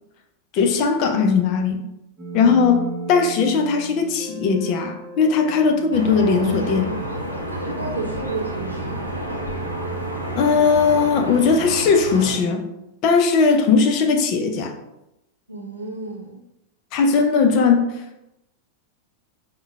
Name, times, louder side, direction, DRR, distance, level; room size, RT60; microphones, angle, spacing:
voice 1, 0.5-1.9 2.3-6.9 10.4-12.6 13.0-14.7 16.9-17.9, left 5 dB, 40° left, 4 dB, 0.4 m, -18 dB
sound 1, 2.2-11.1, right 2 dB, 20° right, 0.7 m, -36 dB
sound 2, 5.9-12.3, right 1 dB, 90° left, 0.5 m, -30 dB
voice 2, 7.5-9.1 15.5-16.4, right 3 dB, 85° right, -2 dB, 0.7 m, -32 dB
5.4 x 2.2 x 2.2 m, 0.88 s
figure-of-eight pair, 90°, 0 cm